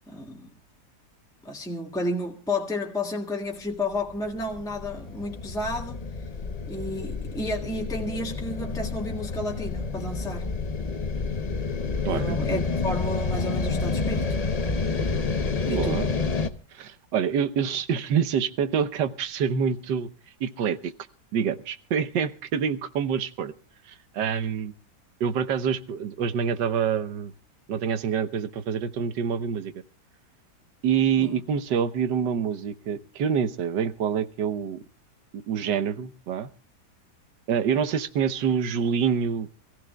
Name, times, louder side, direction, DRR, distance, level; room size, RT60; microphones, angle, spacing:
voice 1, 0.1-0.5 1.4-6.0 6.7-10.5 12.1-14.4 15.6-16.1 31.2-31.4, left 1 dB, ahead, 1.6 m, -32 dB
sound 1, 3.9-16.5, left 4 dB, 40° left, 0.5 m, -29 dB
voice 2, 12.0-12.6 15.7-16.1 16.7-20.1 20.4-20.9 21.3-23.5 23.9-24.7 25.2-27.3 27.7-29.7 30.8-34.8 35.3-36.5 37.5-39.5, right 7 dB, 90° right, 1.5 m, -26 dB
27.0 x 15.5 x 2.3 m
omnidirectional pair, 1.8 m